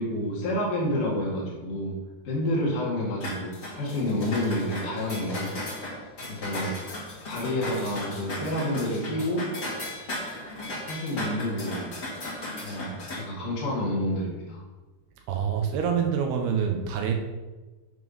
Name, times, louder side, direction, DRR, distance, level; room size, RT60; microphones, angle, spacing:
voice 1, 0.0-2.0 2.3-5.6 6.3-6.8 7.3-9.5 10.9-11.9 12.6-14.6, left 1 dB, 60° left, -5 dB, 3.6 m, -29 dB
sound 1, 3.2-13.2, left 1 dB, 30° left, 2.4 m, -36 dB
voice 2, 15.3-17.1, right 7 dB, 90° right, 3 dB, 3.2 m, -26 dB
9.1 x 6.2 x 5.4 m, 1.2 s
omnidirectional pair, 4.5 m